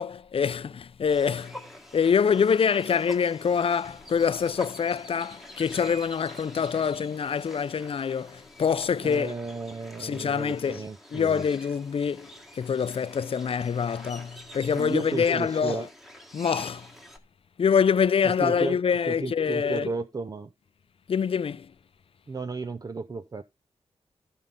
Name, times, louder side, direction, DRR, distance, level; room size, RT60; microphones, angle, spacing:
voice 1, 0.0-1.6 1.9-9.3 10.0-10.9 11.1-15.9 16.3-16.9 17.6-19.9 21.1-21.7, left 6 dB, 55° left, 0.5 m, -25 dB
sound 1, 1.1-17.2, equal, ahead, 1.6 m, -46 dB
voice 2, 9.0-11.4 14.7-15.9 18.2-18.8 19.1-20.5 22.3-23.4, right 3 dB, 35° right, 0.5 m, -33 dB
13.5 x 5.5 x 3.7 m
wide cardioid pair, 85°, 11 cm